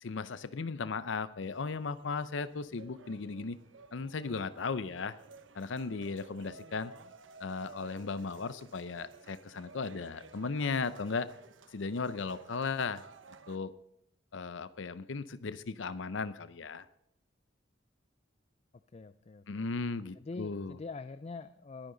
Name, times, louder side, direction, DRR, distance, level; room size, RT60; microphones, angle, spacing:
voice 1, 0.0-3.6 3.9-5.2 5.5-6.9 7.4-11.3 11.7-13.0 13.5-13.7 14.3-16.9 19.5-20.8, left 4 dB, 80° left, 14 dB, 0.6 m, -36 dB
sound 1, 1.4-13.6, right 4 dB, 80° right, 1.0 m, -54 dB
voice 2, 18.9-19.7 20.2-21.9, left 3 dB, 35° left, 13 dB, 0.4 m, -44 dB
21.0 x 10.5 x 3.9 m, 0.78 s
head